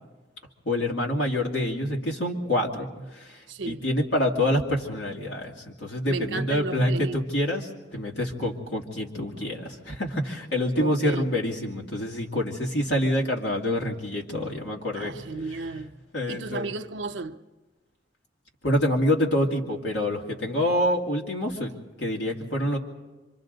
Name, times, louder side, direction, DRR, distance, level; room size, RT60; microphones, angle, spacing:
voice 1, 0.6-15.1 16.1-16.7 18.6-22.8, left 1 dB, 75° left, 2.5 m, -27 dB
voice 2, 3.5-3.8 6.0-7.2 9.4-9.6 10.8-11.2 15.0-16.0 16.3-17.4, right 3 dB, 80° right, 0.7 m, -34 dB
26.5 x 24.5 x 4.0 m
head